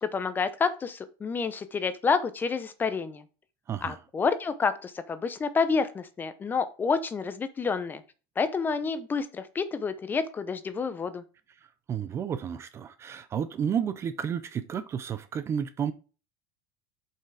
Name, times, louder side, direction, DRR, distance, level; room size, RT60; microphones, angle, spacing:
voice 1, 0.0-3.2 3.8-8.0 8.4-11.2, left 5 dB, 15° left, 0.7 m, -29 dB
voice 2, 11.6-15.9, right 8 dB, 25° right, 0.5 m, -32 dB
7.4 x 5.6 x 4.9 m
supercardioid pair, 155°, 11 cm